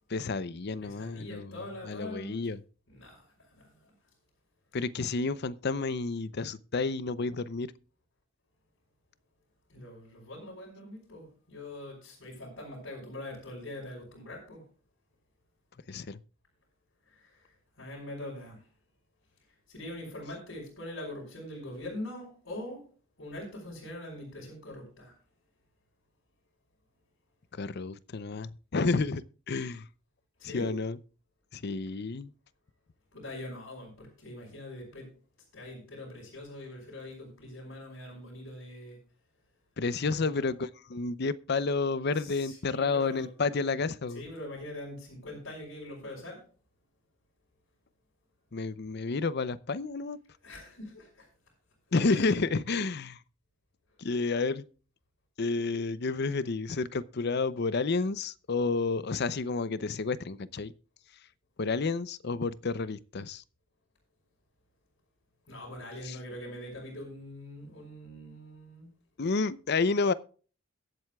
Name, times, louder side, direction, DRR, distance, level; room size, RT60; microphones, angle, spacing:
voice 1, 0.1-2.6 4.7-7.7 15.9-16.2 27.5-29.8 30.4-31.0 31.5-32.3 39.8-44.2 48.5-50.2 51.9-53.2 54.0-54.6 55.4-60.7 61.6-63.4 66.0-66.2 69.2-70.1, left 4 dB, 55° left, 0.6 m, -30 dB
voice 2, 0.8-2.4 2.9-3.9 9.7-14.6 17.1-18.7 19.7-22.8 23.2-25.1 30.4-30.8 33.1-35.1 35.5-39.0 40.0-40.5 42.2-43.3 44.1-46.4 50.4-51.3 52.1-52.4 65.5-68.9, left 1 dB, 80° left, 4.5 m, -43 dB
22.5 x 7.8 x 2.3 m
head